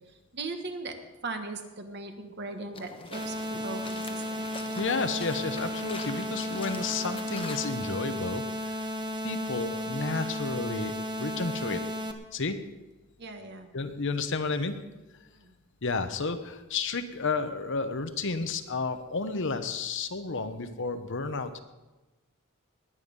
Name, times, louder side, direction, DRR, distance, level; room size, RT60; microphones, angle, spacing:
voice 1, 0.3-4.5 13.2-13.7 15.3-15.5, right 3 dB, 50° right, 6 dB, 1.5 m, -39 dB
sound 1, 2.7-8.0, left 3 dB, 25° left, 1.0 m, -44 dB
sound 2, 3.1-12.1, equal, 20° right, 1.0 m, -34 dB
voice 2, 4.7-8.9 9.2-11.8 12.3-12.6 13.7-14.8 15.8-21.6, left 4 dB, 60° left, 9 dB, 1.0 m, -31 dB
20.0 x 9.2 x 5.4 m, 1.1 s
head